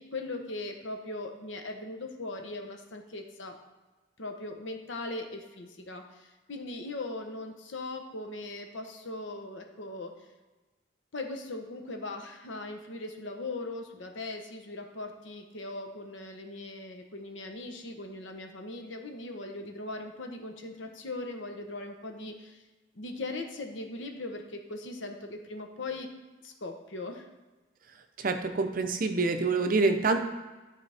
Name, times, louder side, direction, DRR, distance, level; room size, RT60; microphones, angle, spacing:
voice 1, 0.0-3.5 4.2-10.1 11.1-22.6 22.9-26.1 26.4-27.3, left 2 dB, 70° left, 4 dB, 0.9 m, -39 dB
voice 2, 28.2-30.2, right 3 dB, 45° right, 7 dB, 0.6 m, -26 dB
12.0 x 4.2 x 3.4 m, 1.2 s
head